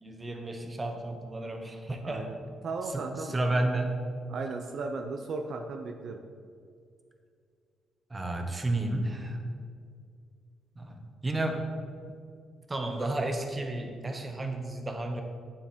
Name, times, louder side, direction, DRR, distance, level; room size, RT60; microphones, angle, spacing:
voice 1, 0.0-2.3 2.9-3.9 8.1-9.4 10.8-11.7 12.7-15.2, right 2 dB, 20° right, 4 dB, 1.3 m, -32 dB
voice 2, 2.0-2.4 2.6-3.6 4.3-6.2, right 3 dB, 60° right, 4 dB, 0.6 m, -36 dB
9.0 x 7.8 x 4.4 m, 2.3 s
cardioid pair, 90°, 0 cm